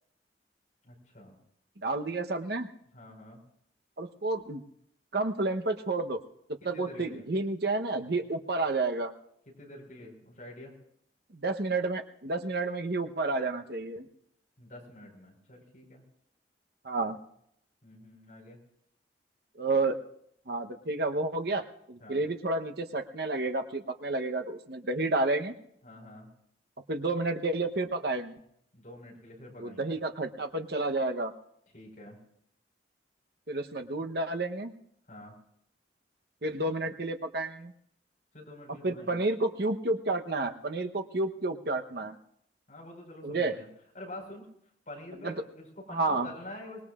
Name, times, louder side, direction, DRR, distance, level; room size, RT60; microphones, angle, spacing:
voice 1, 0.8-1.4 2.9-3.4 6.7-7.2 9.6-10.7 14.6-16.0 17.8-18.6 22.0-22.2 25.8-26.3 28.7-30.0 31.7-32.2 35.1-35.4 38.3-39.2 42.7-43.7 43.9-44.5 44.9-46.8, left 1 dB, 45° left, 0 dB, 4.8 m, -47 dB
voice 2, 1.8-2.7 4.0-4.6 5.1-6.2 6.6-9.1 11.3-14.1 16.8-17.2 19.6-20.0 20.5-21.6 21.9-25.5 26.9-28.3 29.6-31.3 33.5-34.7 36.4-37.7 38.8-42.2 43.2-43.6 45.2-45.3 45.9-46.3, right 2 dB, 60° right, 6 dB, 1.0 m, -30 dB
24.5 x 19.0 x 2.5 m, 0.72 s
head